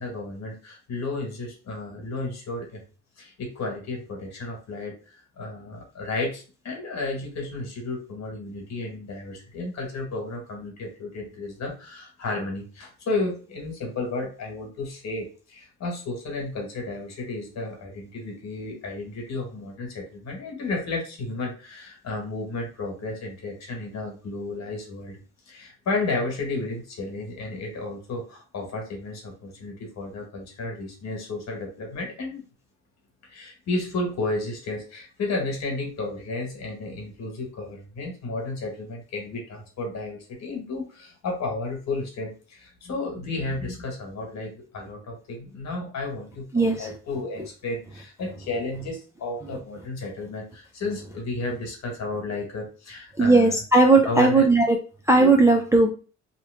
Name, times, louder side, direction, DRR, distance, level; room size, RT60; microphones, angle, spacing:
voice 1, 0.0-2.8 3.2-4.9 5.4-25.2 25.5-32.4 33.3-53.6 54.0-54.5, left 2 dB, 60° left, 1 dB, 1.4 m, -32 dB
voice 2, 46.5-46.9 53.2-54.8 55.1-55.9, right 3 dB, 10° right, 0 dB, 0.4 m, -17 dB
3.0 x 2.2 x 3.4 m, 0.35 s
cardioid pair, 90°, 30 cm